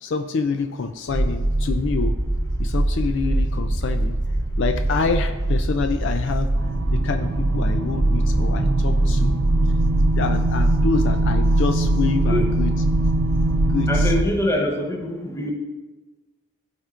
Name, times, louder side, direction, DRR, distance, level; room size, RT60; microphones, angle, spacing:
voice 1, 0.0-2.2 2.6-4.2 4.6-6.5 6.9-9.4 10.2-12.7 13.7-14.1, left 4 dB, 55° left, 7 dB, 0.3 m, -26 dB
sound 1, 1.1-14.3, right 1 dB, 45° right, 0.8 m, -22 dB
sound 2, 6.5-14.2, right 2 dB, 75° right, 0.5 m, -25 dB
voice 2, 13.9-15.5, left 1 dB, 15° left, 1 dB, 0.7 m, -24 dB
12.5 x 4.3 x 2.4 m, 1.2 s
head